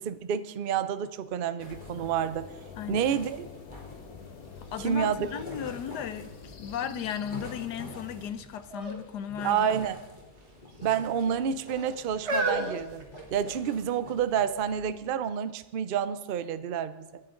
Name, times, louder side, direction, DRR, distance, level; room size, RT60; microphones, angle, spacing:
voice 1, 0.0-2.5 2.9-3.5 4.8-5.2 9.4-10.0 10.8-13.0 13.3-17.2, right 8 dB, 75° right, 13 dB, 0.4 m, -29 dB
sound 1, 1.6-8.3, left 6 dB, 60° left, 1.5 m, -47 dB
sound 2, 1.6-15.1, left 2 dB, 25° left, 3.5 m, -47 dB
voice 2, 2.8-3.1 4.6-9.7, left 8 dB, 75° left, 12 dB, 1.4 m, -35 dB
sound 3, 4.7-4.8 5.2-6.8 7.3-7.8 8.7-9.0 9.3-9.5 10.4-11.0 11.7-13.8 14.5-14.6, right 1 dB, 40° right, 1.7 m, -35 dB
27.5 x 10.5 x 3.8 m, 1.1 s
omnidirectional pair, 1.8 m